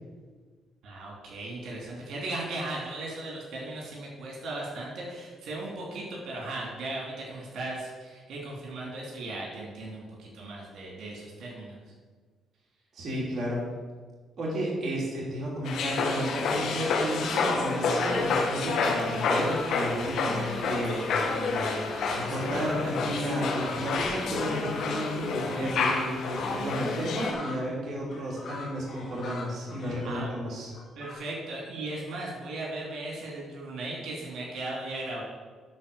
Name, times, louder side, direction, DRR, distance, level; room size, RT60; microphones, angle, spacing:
voice 1, 0.8-11.8 30.0-30.3 31.0-35.2, right 2 dB, 75° right, -3 dB, 3.1 m, -37 dB
voice 2, 12.9-13.6 14.4-21.8 22.1-30.7, equal, 50° right, -4 dB, 3.0 m, -32 dB
sound 1, 15.6-27.3, left 4 dB, 75° left, 1.6 m, -29 dB
sound 2, 17.2-18.4 18.7-21.5 21.9-26.2 26.7-31.1, left 3 dB, 60° left, 3.0 m, -43 dB
10.5 x 4.5 x 7.0 m, 1.5 s
cardioid pair, 90°, 0 cm